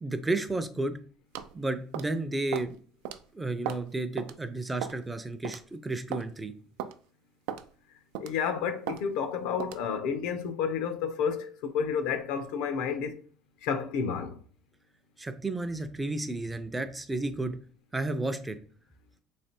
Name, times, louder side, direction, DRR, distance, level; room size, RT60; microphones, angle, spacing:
voice 1, 0.0-0.9 1.5-2.8 3.3-6.5 15.2-17.5 17.9-18.6, right 2 dB, 10° right, 0.4 m, -32 dB
sound 1, 1.3-1.5 1.9-2.2 2.5-2.7 3.0-3.2 3.6-3.9 4.2-4.3 4.8-5.0 5.4-5.6 6.1-6.3 6.8-6.9 7.5-7.7 8.1-8.4 8.9-9.0 9.6-9.8, right 10 dB, 80° right, 0.4 m, -36 dB
voice 2, 8.2-13.2 13.6-14.4, left 6 dB, 75° left, 0.6 m, -30 dB
3.2 x 3.2 x 4.3 m
cardioid pair, 145°, 0 cm